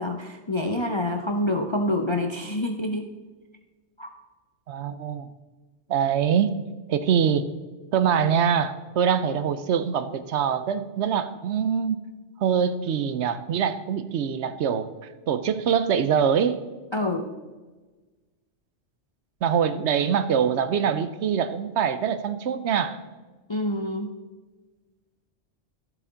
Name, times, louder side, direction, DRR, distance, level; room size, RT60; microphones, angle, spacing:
voice 1, 0.0-3.1 4.0-4.1 16.9-17.3 23.5-24.1, left 1 dB, 35° left, 5 dB, 0.4 m, -27 dB
voice 2, 4.7-5.3 5.9-6.5 6.9-7.5 7.9-12.0 12.4-14.9 15.3-16.6 19.4-23.0, right 7 dB, 70° right, 12 dB, 0.9 m, -24 dB
12.5 x 7.5 x 3.9 m, 1.3 s
omnidirectional pair, 1.3 m